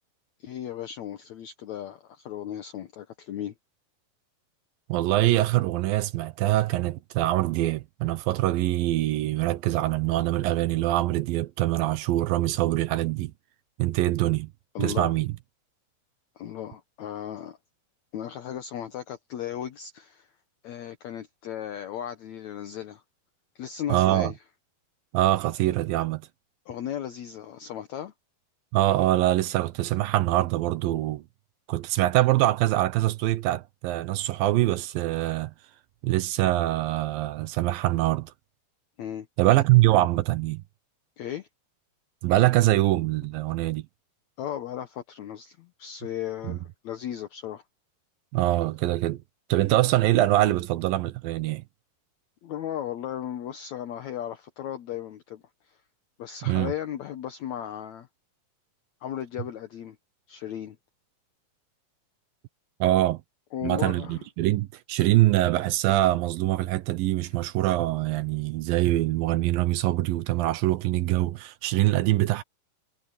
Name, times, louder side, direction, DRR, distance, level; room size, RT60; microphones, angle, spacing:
voice 1, 0.4-3.5 14.8-15.1 16.4-17.6 18.1-20.3 20.6-23.0 23.6-24.4 26.7-28.1 39.0-39.3 41.2-41.5 44.4-47.6 52.4-55.8 56.2-58.1 59.0-60.0 60.3-60.8 63.5-64.2, left 10 dB, 65° left, 2.1 m, -36 dB
voice 2, 4.9-13.3 13.8-14.5 14.8-15.3 23.9-24.3 25.1-26.2 28.7-31.2 31.7-35.5 36.0-38.3 39.4-40.6 42.2-43.8 46.4-46.6 48.3-49.2 49.5-51.6 56.5-56.7 62.8-63.2 63.6-72.4, right 15 dB, 85° right, 2.6 m, -24 dB
omnidirectional pair, 4.0 m